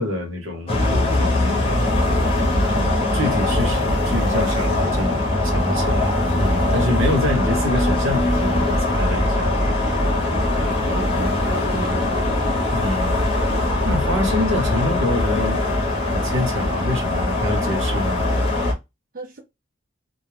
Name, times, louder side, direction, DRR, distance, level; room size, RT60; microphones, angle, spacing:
voice 1, 0.0-1.7 2.5-2.8 3.1-9.8 12.7-13.3 13.8-15.6 16.0-18.2, left 1 dB, 75° right, 1.0 m, -26 dB
sound 1, 0.7-18.7, left 1 dB, 30° left, 0.7 m, -21 dB
voice 2, 2.6-3.6 10.9-12.4 19.1-19.4, right 2 dB, 40° right, 0.4 m, -34 dB
2.3 x 2.1 x 3.2 m
head